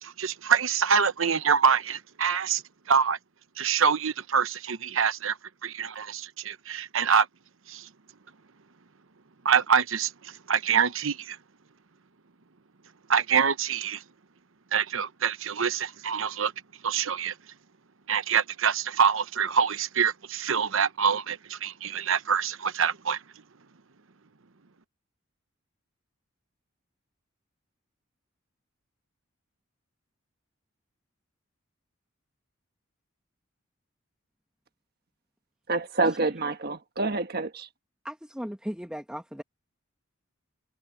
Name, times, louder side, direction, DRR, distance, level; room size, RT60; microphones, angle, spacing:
voice 1, 0.0-2.6 2.9-3.2 3.6-5.4 5.6-7.3 7.7-7.9 9.4-11.4 13.1-14.0 14.7-16.5 16.8-17.3 18.1-23.2, right 6 dB, 70° right, 0.9 m, -25 dB
voice 2, 35.7-37.7, right 3 dB, 50° right, 1.4 m, -27 dB
voice 3, 38.0-39.4, equal, 5° right, 1.6 m, -36 dB
head